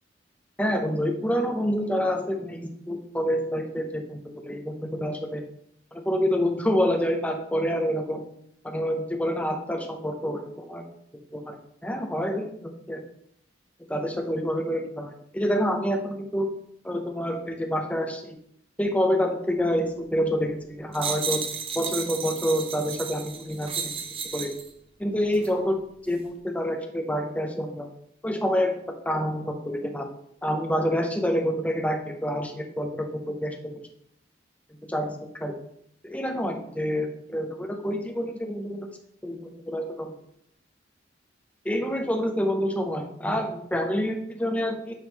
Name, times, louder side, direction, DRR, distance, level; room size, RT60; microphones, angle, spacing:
voice 1, 0.6-5.4 5.9-8.3 8.6-10.8 11.3-11.6 11.8-13.0 13.9-16.5 16.8-18.4 18.8-21.4 21.7-24.0 24.3-24.5 25.0-27.9 28.2-28.8 29.1-30.1 30.4-33.6 34.9-35.1 35.4-35.5 36.0-38.9 39.2-40.1 41.6-44.9, equal, 10° left, 3 dB, 0.7 m, -27 dB
sound 1, 20.9-24.7 25.3-25.5, right 6 dB, 30° right, 0.5 m, -33 dB
9.1 x 3.2 x 3.6 m, 0.70 s
head